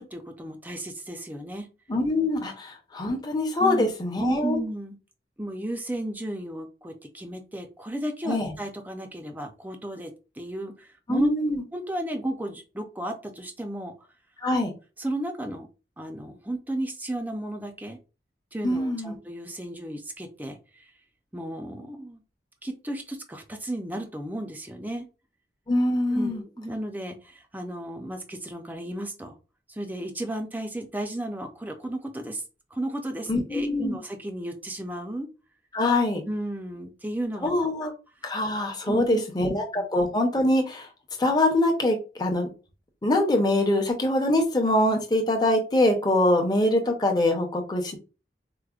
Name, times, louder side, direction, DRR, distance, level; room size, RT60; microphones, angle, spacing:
voice 1, 0.0-1.7 3.6-3.9 4.2-5.0 5.4-11.3 11.7-13.9 15.0-15.7 16.0-18.0 18.5-20.6 21.3-22.2 22.6-25.1 26.1-29.3 29.7-32.4 32.7-35.3 36.3-37.5 37.8-37.9 38.8-39.5 39.8-39.9, right 1 dB, 10° right, 4 dB, 0.5 m, -33 dB
voice 2, 1.9-4.6 8.2-8.5 11.1-11.6 14.4-14.7 18.6-19.1 25.7-26.4 33.3-34.0 35.7-36.2 37.4-37.9 38.2-40.9 41.2-42.5 43.0-48.0, left 1 dB, 25° left, 2 dB, 0.7 m, -24 dB
4.8 x 2.1 x 2.4 m, 0.32 s
head